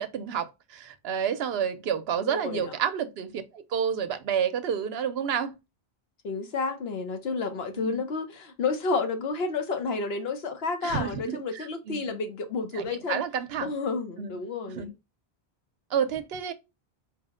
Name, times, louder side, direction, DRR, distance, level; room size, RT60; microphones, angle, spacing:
voice 1, 0.0-5.6 7.8-8.0 10.8-12.1 12.7-13.7 14.2-14.4 14.7-14.9 15.9-16.5, right 8 dB, 70° right, 0.8 m, -30 dB
voice 2, 2.3-2.8 6.2-13.2 13.6-14.9, left 4 dB, 70° left, 1.0 m, -30 dB
4.5 x 2.1 x 3.6 m
omnidirectional pair, 1.1 m